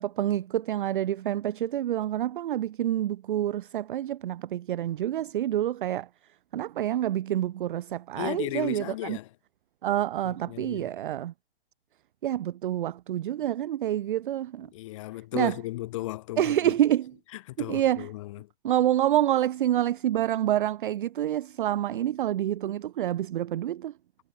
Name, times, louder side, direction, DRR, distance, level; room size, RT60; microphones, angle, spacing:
voice 1, 0.0-6.1 6.5-9.2 9.8-11.3 12.2-14.7 15.3-15.6 16.4-17.2 17.6-18.1 18.6-23.9, right 12 dB, 50° right, 0.6 m, -27 dB
voice 2, 8.1-9.3 10.2-10.9 14.7-16.7 17.6-18.5, left 17 dB, 30° left, 0.7 m, -35 dB
hypercardioid pair, 140°, 33 cm